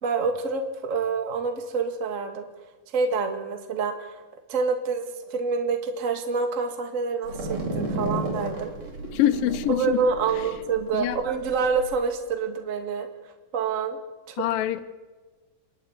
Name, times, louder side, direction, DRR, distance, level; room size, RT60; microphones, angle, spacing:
voice 1, 0.0-2.5 2.9-4.2 4.5-8.7 9.7-13.1 13.5-14.0 14.3-14.4, right 5 dB, 30° right, 1.6 m, -27 dB
sound 1, 7.2-11.9, right 2 dB, 50° right, 4.4 m, -33 dB
voice 2, 9.1-10.0 10.9-11.2 14.4-14.9, left 12 dB, 85° left, 2.7 m, -24 dB
27.0 x 12.0 x 9.6 m
omnidirectional pair, 3.9 m